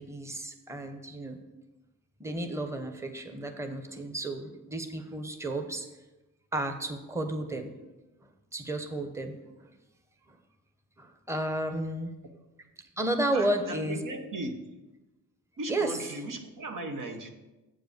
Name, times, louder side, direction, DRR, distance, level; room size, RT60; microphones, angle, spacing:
voice 1, 0.0-1.4 2.2-5.9 6.5-7.7 8.5-9.3 11.0-12.1 13.0-14.0 15.7-15.9, right 1 dB, 10° right, 6 dB, 0.9 m, -32 dB
voice 2, 13.3-14.6 15.6-17.3, right 2 dB, 65° right, 4 dB, 1.2 m, -37 dB
7.7 x 4.7 x 6.6 m, 1.1 s
cardioid pair, 65°, 34 cm